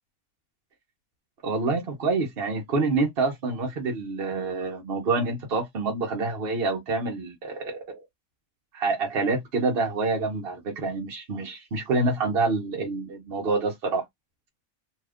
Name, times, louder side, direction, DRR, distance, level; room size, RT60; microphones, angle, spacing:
voice 1, 1.4-7.9 8.7-14.0, right 3 dB, 50° right, 0.9 m, -27 dB
2.8 x 2.3 x 3.5 m
omnidirectional pair, 1.5 m